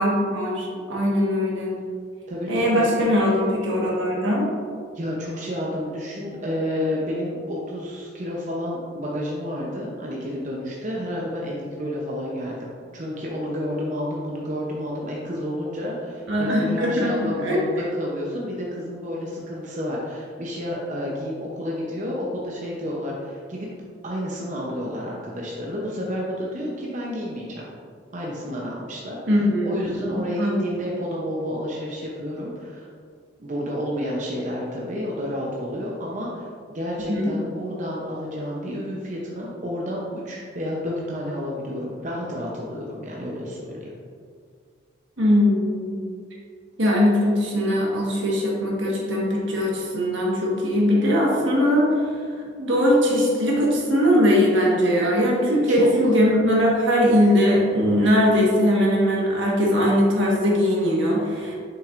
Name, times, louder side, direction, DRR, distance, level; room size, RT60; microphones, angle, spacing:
voice 1, 0.0-1.8 2.5-4.5 16.3-17.6 29.3-30.7 37.1-37.3 45.2-46.0 46.8-52.1 52.6-61.5, equal, 75° right, -3 dB, 1.4 m, -20 dB
voice 2, 2.3-2.9 4.9-23.7 24.0-27.7 28.1-32.9 33.4-43.9 55.7-55.9, equal, 40° right, -4 dB, 0.7 m, -30 dB
6.6 x 5.8 x 2.5 m, 2.1 s
head